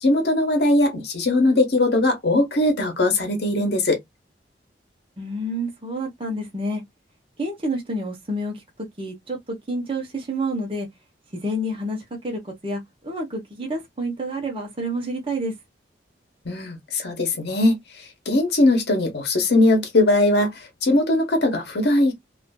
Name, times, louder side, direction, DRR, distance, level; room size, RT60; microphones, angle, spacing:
voice 1, 0.0-4.0 16.4-22.1, left 2 dB, 65° left, 0.8 m, -20 dB
voice 2, 5.2-6.8 7.4-8.6 9.0-10.9 11.3-15.5, right 1 dB, 30° right, 0.9 m, -29 dB
2.5 x 2.4 x 2.2 m
head